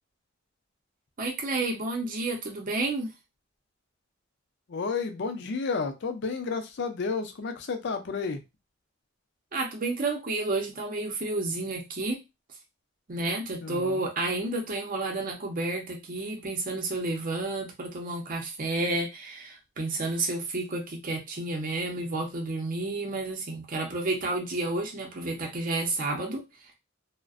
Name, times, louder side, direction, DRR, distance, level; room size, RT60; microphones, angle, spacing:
voice 1, 1.2-3.1 9.5-12.2 13.1-26.4, right 2 dB, 45° right, 1 dB, 0.6 m, -31 dB
voice 2, 4.7-8.4 13.6-14.1, left 4 dB, 60° left, 6 dB, 0.5 m, -31 dB
2.4 x 2.1 x 2.4 m, 0.23 s
head